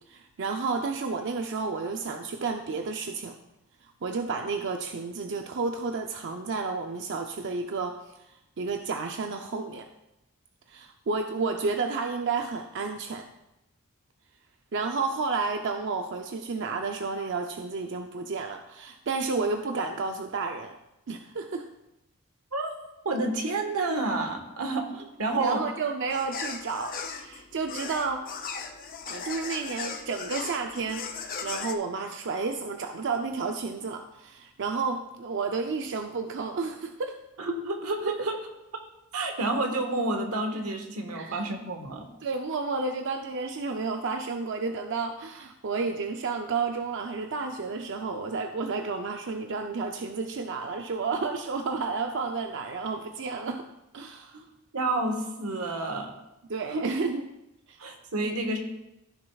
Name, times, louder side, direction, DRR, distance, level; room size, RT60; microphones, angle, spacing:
voice 1, 0.1-3.4 4.0-8.0 8.6-9.9 10.7-13.3 14.7-20.8 21.1-21.7 25.4-28.3 29.1-31.1 31.4-37.2 38.1-38.2 41.1-41.4 42.2-53.6 53.9-54.4 56.5-57.2 57.7-57.8 58.2-58.3, right 4 dB, 55° right, 5 dB, 0.5 m, -31 dB
voice 2, 23.0-25.6 37.4-38.4 39.1-42.1 54.3-54.4 54.7-56.1 56.7-56.9 57.8-58.6, right 2 dB, 90° right, 4 dB, 1.4 m, -29 dB
sound 1, 26.1-31.7, left 5 dB, 40° left, 0.7 m, -37 dB
15.0 x 6.5 x 2.3 m, 0.91 s
head